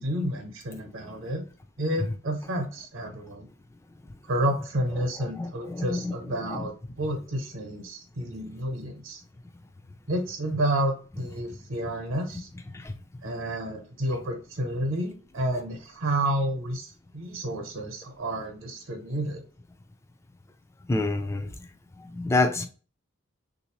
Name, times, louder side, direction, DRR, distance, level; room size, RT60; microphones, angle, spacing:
voice 1, 0.0-1.4 1.8-3.5 4.3-6.7 7.0-9.2 10.1-12.5 13.2-19.4, right 1 dB, 70° right, 0.9 m, -30 dB
voice 2, 5.4-6.1 6.4-6.7 12.7-12.9 20.9-21.5 22.1-22.7, left 2 dB, 15° left, 0.3 m, -27 dB
3.4 x 2.6 x 3.0 m
head